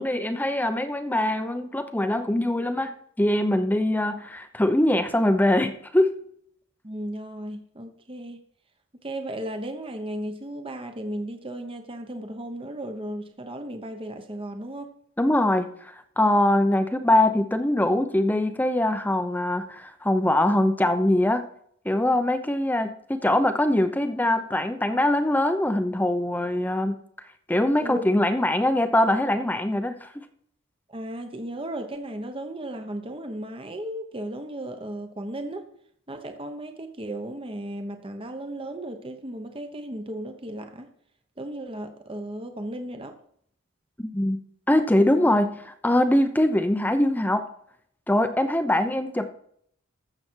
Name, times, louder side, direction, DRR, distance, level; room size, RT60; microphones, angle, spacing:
voice 1, 0.0-6.1 15.2-21.4 21.8-27.0 27.5-30.1 44.0-44.4 44.7-47.4 48.1-49.3, left 1 dB, 10° left, 9 dB, 0.7 m, -23 dB
voice 2, 6.8-8.4 9.0-14.9 27.8-28.1 30.9-35.7 36.1-40.9 41.4-43.1 45.2-45.4, right 1 dB, 25° right, 6 dB, 1.0 m, -35 dB
14.5 x 7.1 x 4.6 m, 0.66 s
head